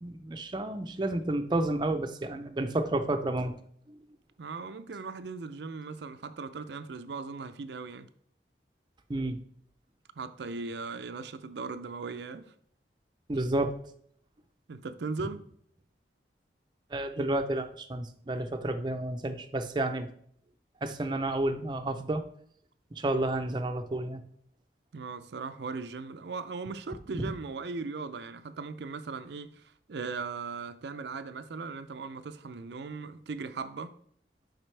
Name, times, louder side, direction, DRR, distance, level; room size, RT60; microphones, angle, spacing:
voice 1, 0.0-3.6 3.9-4.0 9.1-9.4 13.3-13.8 16.9-20.1 20.8-22.2 22.9-24.2 27.1-27.3, right 2 dB, 25° right, 0.5 m, -31 dB
voice 2, 4.4-8.1 10.2-12.5 14.7-15.5 24.9-33.9, right 4 dB, 75° right, 0.5 m, -38 dB
7.5 x 5.0 x 3.2 m
head